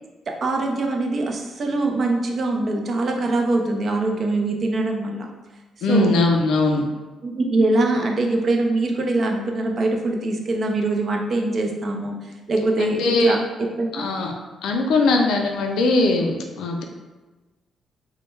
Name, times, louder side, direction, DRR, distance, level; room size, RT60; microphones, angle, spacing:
voice 1, 0.4-5.3 5.9-6.1 7.2-12.2 12.5-13.4 13.8-14.1, right 2 dB, 50° right, 2 dB, 0.4 m, -23 dB
voice 2, 5.8-6.9 12.8-13.4 13.9-14.3 14.6-16.8, left 2 dB, 80° left, 2 dB, 0.3 m, -20 dB
2.2 x 2.0 x 3.0 m, 1.2 s
cardioid pair, 90°, 0 cm